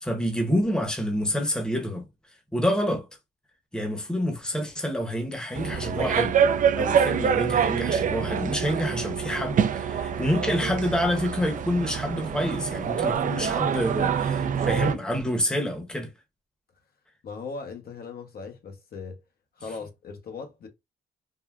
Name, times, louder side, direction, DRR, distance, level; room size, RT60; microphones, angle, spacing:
voice 1, 0.0-2.1 2.5-3.1 3.7-6.4 6.8-16.1, equal, 5° left, 0.8 m, -27 dB
sound 1, 5.5-15.0, right 7 dB, 45° right, 0.4 m, -26 dB
voice 2, 17.2-19.2 19.5-20.7, left 4 dB, 55° left, 0.8 m, -38 dB
3.7 x 2.2 x 2.3 m
cardioid pair, 75°, 19 cm